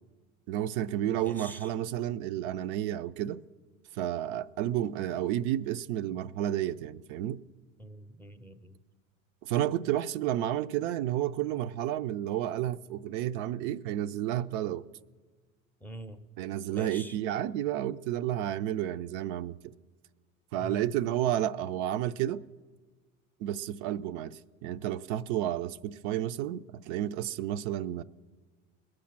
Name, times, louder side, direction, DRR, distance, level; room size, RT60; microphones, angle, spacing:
voice 1, 0.5-3.4 3.9-7.4 9.4-14.8 16.4-19.7 20.5-22.4 23.4-28.0, right 12 dB, 55° right, 0.5 m, -31 dB
voice 2, 1.1-1.7 7.8-8.8 15.8-16.3 16.7-17.2 20.6-20.9, right 1 dB, 5° left, 0.5 m, -45 dB
20.0 x 7.6 x 5.9 m
hypercardioid pair, 100°, 41 cm